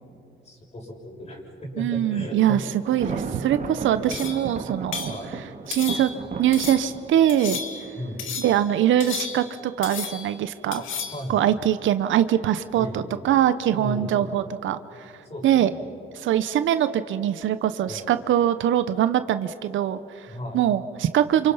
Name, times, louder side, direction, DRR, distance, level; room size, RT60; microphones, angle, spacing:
voice 1, 0.4-2.6 3.0-3.2 3.9-4.4 5.1-5.4 7.9-8.3 10.8-10.9 11.1-11.5 12.7-13.2 13.7-14.2 15.2-15.8 17.8-18.1 20.3-20.6, equal, 35° left, -1 dB, 6.8 m, -35 dB
voice 2, 1.8-2.6 2.9-3.2 3.4-5.1 5.7-6.1 6.4-7.6 8.4-10.8 11.3-15.1 15.4-15.7 16.1-21.5, right 11 dB, 75° right, 12 dB, 0.9 m, -22 dB
Thunder, 2.9-8.7, right 5 dB, 40° right, 2.0 m, -35 dB
sound 1, 4.1-4.5 4.9-5.2 5.7-6.2 6.5-6.9 7.3-7.9 8.2-8.6 9.0-9.6 9.8-10.4 10.7-11.2, left 6 dB, 80° left, 2.3 m, -33 dB
29.0 x 28.0 x 5.7 m, 2.7 s
cardioid pair, 90°, 20 cm